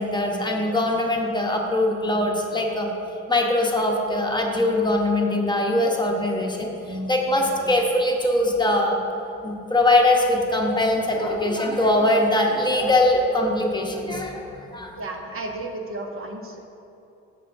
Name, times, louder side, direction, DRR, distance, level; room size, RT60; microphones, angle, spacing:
voice 1, 0.0-2.9 3.3-9.0 9.4-14.9, left 1 dB, 15° left, 0 dB, 1.0 m, -22 dB
voice 2, 15.0-16.6, right 2 dB, 45° right, 2 dB, 0.9 m, -33 dB
12.0 x 6.8 x 2.6 m, 2.8 s
cardioid pair, 90°, 31 cm